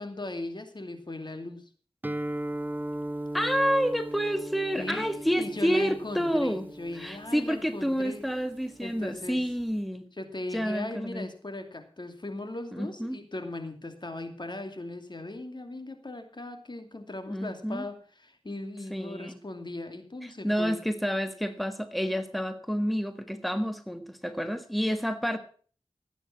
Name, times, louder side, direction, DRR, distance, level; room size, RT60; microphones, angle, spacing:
voice 1, 0.0-1.7 4.8-8.2 8.8-9.4 10.2-20.8, left 2 dB, 50° left, 7 dB, 2.5 m, -38 dB
Guitar, 2.0-9.8, right 1 dB, 20° right, 1.0 m, -38 dB
voice 2, 3.3-6.7 7.0-10.1 10.5-11.3 12.7-13.2 17.3-17.8 18.9-19.4 20.2-25.4, equal, ahead, 9 dB, 1.5 m, -29 dB
16.0 x 9.2 x 6.0 m, 0.43 s
wide cardioid pair, 45°, 10 cm